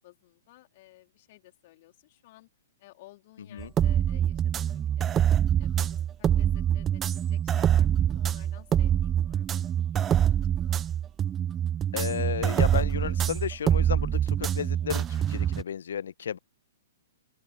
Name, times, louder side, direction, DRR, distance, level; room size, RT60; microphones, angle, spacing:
voice 1, 0.0-2.5 2.8-5.3 5.6-9.6 9.9-10.4 10.7-10.8, left 18 dB, 45° left, 3.8 m, -55 dB
sound 1, 3.6-15.6, right 10 dB, 20° right, 0.6 m, -25 dB
voice 2, 11.9-16.4, left 8 dB, 65° left, 0.8 m, -33 dB
open air
figure-of-eight pair, 115°, 0 cm